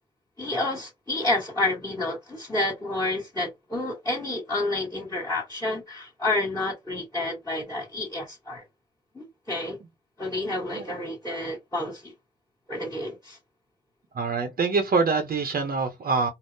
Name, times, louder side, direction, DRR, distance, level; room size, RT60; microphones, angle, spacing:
voice 1, 0.4-8.6 9.1-9.8 10.2-12.1 12.7-13.4, left 2 dB, 15° left, 1.3 m, -29 dB
voice 2, 14.2-16.3, right 4 dB, 50° right, 0.7 m, -25 dB
3.5 x 2.0 x 2.6 m
cardioid pair, 70°, 19 cm